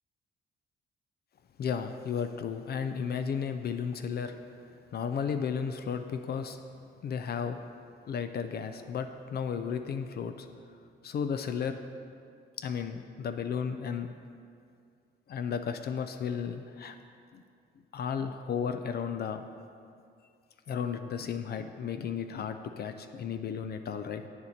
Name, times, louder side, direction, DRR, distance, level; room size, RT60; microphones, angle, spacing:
voice 1, 1.6-4.3 4.9-6.6 7.0-7.6 8.1-10.5 11.0-11.8 12.6-14.1 15.3-17.0 17.3-17.4 17.9-19.4 20.7-24.3, left 7 dB, 55° left, 8 dB, 0.5 m, -34 dB
8.3 x 6.9 x 4.2 m, 2.3 s
cardioid pair, 90°, 20 cm